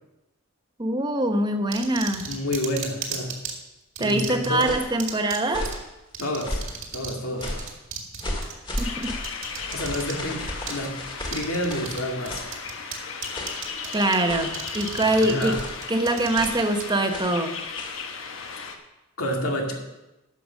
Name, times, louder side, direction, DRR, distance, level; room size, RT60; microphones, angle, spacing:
voice 1, 0.8-2.2 4.0-5.7 8.8-9.2 13.9-15.6 15.9-17.6, right 1 dB, 20° right, 6 dB, 0.9 m, -24 dB
sound 1, 1.7-3.5 4.0-4.6 5.0-5.4 5.7-5.8 6.1-7.2 7.4-10.1 10.7-10.8 11.3-12.0 12.3-13.0 13.2-14.2 14.5-16.8, right 8 dB, 65° right, 1.9 m, -34 dB
voice 2, 2.2-3.4 4.0-4.7 6.2-6.6 6.9-7.5 9.7-11.0 11.3-12.5 15.2-15.6 19.2-19.7, left 1 dB, 85° left, 1 dB, 2.1 m, -29 dB
sound 2, 4.4-5.0 5.4-5.9 6.4-6.8 7.4-7.8 8.2-12.0 12.3-12.5 13.3-13.7 14.2-14.7 15.5-15.8 16.3-16.6 17.1-17.4 17.7-18.0, left 1 dB, 25° left, 1.7 m, -34 dB
sound 3, 8.8-18.7, left 5 dB, 65° left, 1.1 m, -36 dB
11.0 x 6.9 x 6.2 m, 0.99 s
head